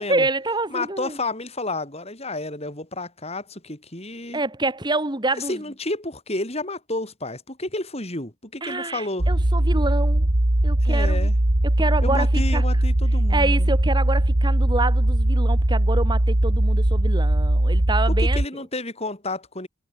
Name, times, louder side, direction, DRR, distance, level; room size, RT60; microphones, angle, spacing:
voice 1, 0.1-1.2 4.3-5.6 8.6-10.3 10.6-11.3 11.6-12.6 13.3-18.4, right 2 dB, 20° right, 1.9 m, -27 dB
voice 2, 0.7-4.4 5.3-9.3 10.8-11.4 12.0-13.7 18.1-19.7, left 2 dB, 30° left, 6.1 m, -31 dB
sound 1, 9.2-18.5, right 1 dB, 50° right, 1.9 m, -20 dB
head